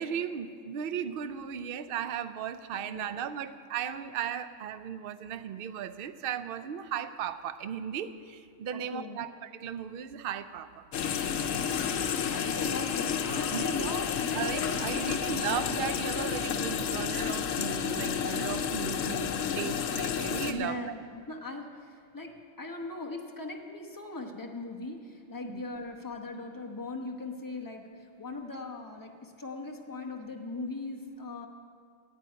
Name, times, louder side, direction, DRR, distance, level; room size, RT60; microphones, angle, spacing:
voice 1, 0.0-10.8 13.5-14.0 14.3-20.8 25.4-25.6, right 8 dB, 60° right, 12 dB, 0.6 m, -36 dB
voice 2, 8.7-9.2 12.1-14.4 15.0-15.3 20.4-22.3 22.6-27.9 28.2-31.5, left 2 dB, 15° left, 2 dB, 1.0 m, -39 dB
sound 1, 10.9-20.5, left 7 dB, 80° left, 1.1 m, -31 dB
9.6 x 8.2 x 9.2 m, 2.2 s
omnidirectional pair, 1.3 m